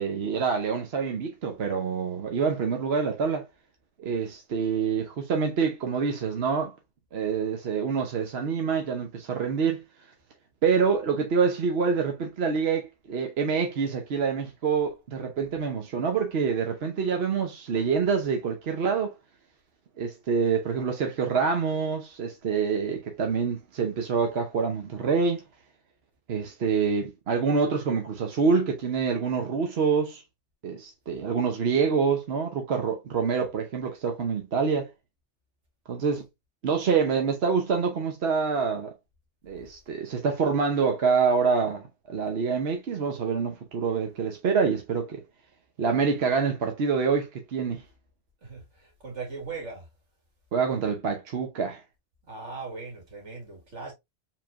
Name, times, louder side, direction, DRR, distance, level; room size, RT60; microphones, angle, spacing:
voice 1, 0.0-3.5 4.0-6.7 7.1-9.8 10.6-19.1 20.0-25.4 26.3-30.2 30.6-34.9 35.9-36.2 36.6-38.9 39.4-45.2 45.8-47.8 50.5-51.8, right 5 dB, 65° right, 1.0 m, -26 dB
voice 2, 48.4-49.9 52.2-53.9, right 4 dB, 80° right, 2.2 m, -39 dB
4.8 x 3.7 x 2.4 m
omnidirectional pair, 1.2 m